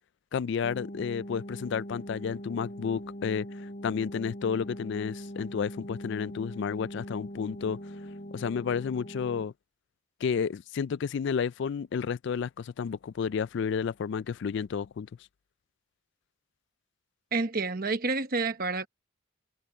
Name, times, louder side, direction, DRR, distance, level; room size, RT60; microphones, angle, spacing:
voice 1, 0.3-8.0 8.3-9.5 10.2-15.1, left 6 dB, 55° left, 0.3 m, -31 dB
sound 1, 0.6-9.5, equal, 35° left, 4.3 m, -42 dB
voice 2, 17.3-18.9, right 3 dB, 45° right, 1.0 m, -29 dB
head